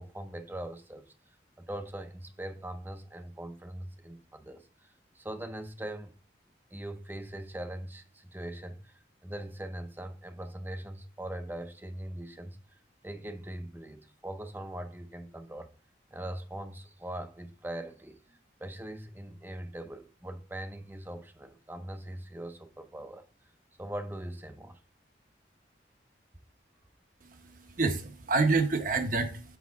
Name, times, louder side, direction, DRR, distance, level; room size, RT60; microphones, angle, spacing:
voice 1, 0.0-6.1 6.7-15.7 16.1-23.3 23.8-24.8, right 1 dB, 10° right, 0.6 m, -41 dB
voice 2, 27.2-29.6, right 3 dB, 50° right, 0.9 m, -28 dB
6.2 x 5.3 x 3.6 m
head